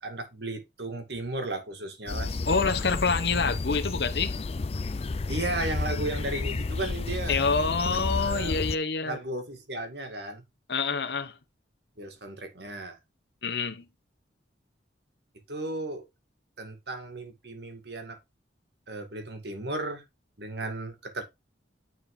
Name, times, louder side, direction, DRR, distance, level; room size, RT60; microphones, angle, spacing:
voice 1, 0.0-2.4 5.3-7.4 8.2-8.6 9.0-10.4 12.0-13.0 15.5-16.0 16.6-18.2 18.9-20.0 20.4-21.2, right 2 dB, 60° right, 2.2 m, -35 dB
sound 1, 2.1-8.8, left 3 dB, 35° left, 0.4 m, -31 dB
voice 2, 2.5-4.4 7.3-9.2 10.7-11.3 13.4-13.9, left 4 dB, 60° left, 1.0 m, -27 dB
9.7 x 4.3 x 3.8 m
head